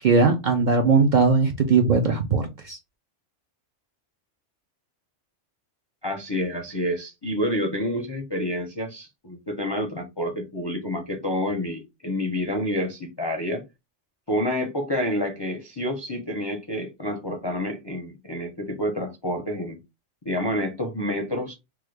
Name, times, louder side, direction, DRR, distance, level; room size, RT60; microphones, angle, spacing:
voice 1, 0.0-2.8, right 4 dB, 60° right, 0.5 m, -19 dB
voice 2, 6.0-13.6 14.3-19.8 20.2-21.5, left 1 dB, 35° left, 0.4 m, -28 dB
3.2 x 2.3 x 3.2 m
omnidirectional pair, 1.3 m